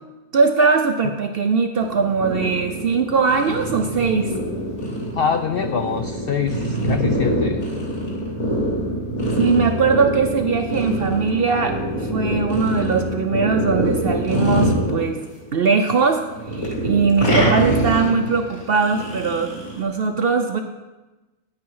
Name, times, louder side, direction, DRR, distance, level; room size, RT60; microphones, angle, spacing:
voice 1, 0.3-4.3 9.4-15.2 15.5-16.2 16.5-20.6, right 5 dB, 55° right, 6 dB, 0.7 m, -20 dB
sound 1, 1.8-15.6 15.9-19.8, right 1 dB, 50° left, 2.9 m, -24 dB
voice 2, 5.1-7.6, left 6 dB, 70° left, 7 dB, 0.5 m, -24 dB
9.7 x 9.3 x 4.7 m, 1.1 s
omnidirectional pair, 1.6 m